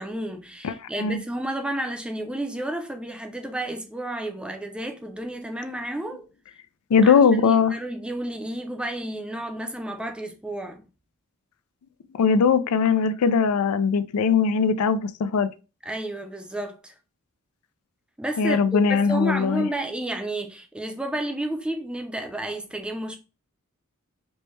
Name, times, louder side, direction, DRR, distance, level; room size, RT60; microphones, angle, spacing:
voice 1, 0.0-6.2 7.0-10.8 15.8-16.9 18.2-23.2, right 1 dB, 5° right, 0.4 m, -31 dB
voice 2, 6.9-7.8 12.2-15.5 18.4-19.7, left 5 dB, 90° left, 0.4 m, -20 dB
4.4 x 2.1 x 3.1 m
head